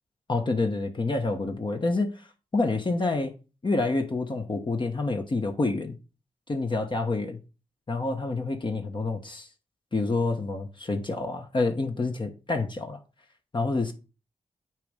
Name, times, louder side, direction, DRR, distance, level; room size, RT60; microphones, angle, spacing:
voice 1, 0.3-2.2 2.5-3.3 3.6-6.0 6.5-7.4 7.9-9.5 9.9-13.0 13.5-13.9, left 3 dB, 40° left, 1.1 m, -28 dB
9.0 x 3.1 x 5.1 m
cardioid pair, 60°, 13 cm